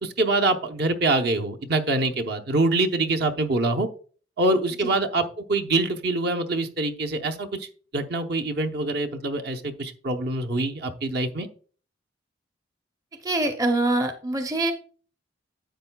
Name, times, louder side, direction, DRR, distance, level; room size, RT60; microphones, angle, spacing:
voice 1, 0.0-3.9 4.4-7.7 7.9-11.5, right 2 dB, 55° right, 4 dB, 0.8 m, -25 dB
voice 2, 13.2-14.7, right 2 dB, 15° right, 5 dB, 0.6 m, -24 dB
10.0 x 7.9 x 2.3 m, 0.42 s
head